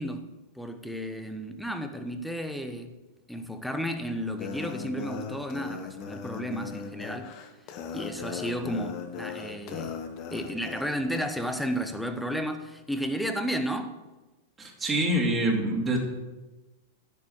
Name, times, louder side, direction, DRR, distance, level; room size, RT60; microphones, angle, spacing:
voice 1, 0.0-3.0 3.3-7.3 7.9-10.0 10.3-14.0, equal, ahead, 1.0 m, -33 dB
sound 1, 4.3-11.3, left 6 dB, 45° left, 1.3 m, -38 dB
voice 2, 14.6-16.0, right 1 dB, 15° right, 2.5 m, -25 dB
10.5 x 6.8 x 6.5 m
hypercardioid pair, 105°, 0 cm